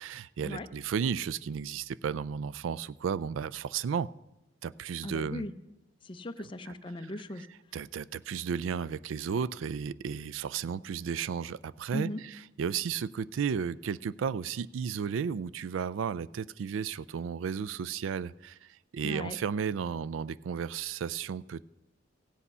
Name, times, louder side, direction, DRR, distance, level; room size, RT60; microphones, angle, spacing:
voice 1, 0.0-4.1 4.6-5.5 6.7-6.8 7.7-18.6 18.9-21.7, right 7 dB, 75° right, 0.3 m, -33 dB
voice 2, 5.0-5.5 6.0-7.5 11.9-12.2 19.0-19.4, left 1 dB, 25° left, 0.5 m, -38 dB
15.5 x 8.4 x 5.5 m
head